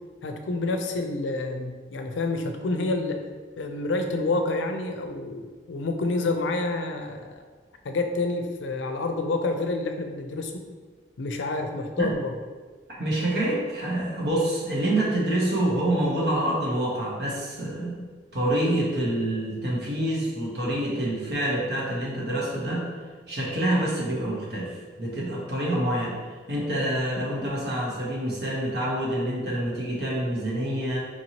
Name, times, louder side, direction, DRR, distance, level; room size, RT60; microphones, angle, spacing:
voice 1, 0.2-3.2 3.6-7.4 7.8-10.6 11.2-12.3, left 2 dB, 90° left, 5 dB, 0.4 m, -28 dB
voice 2, 12.9-18.0 18.3-22.9 23.3-26.2 26.5-31.0, right 1 dB, 60° right, -5 dB, 1.0 m, -27 dB
4.4 x 3.0 x 2.8 m, 1.4 s
head